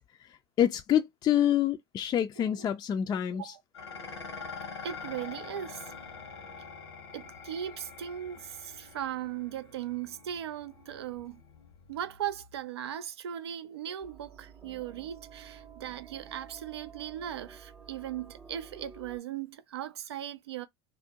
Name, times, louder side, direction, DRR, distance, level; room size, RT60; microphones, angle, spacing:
voice 1, 0.6-3.5, left 10 dB, 30° left, 0.3 m, -27 dB
voice 2, 2.4-2.7 3.3-3.6 4.8-5.9 7.1-11.4 11.9-20.7, right 10 dB, 80° right, 0.4 m, -38 dB
Dishes pots and pans, 3.7-12.6, left 5 dB, 90° left, 0.9 m, -45 dB
sound 1, 14.0-19.2, right 6 dB, 15° right, 0.8 m, -51 dB
2.5 x 2.1 x 2.8 m
hypercardioid pair, 80°, 14 cm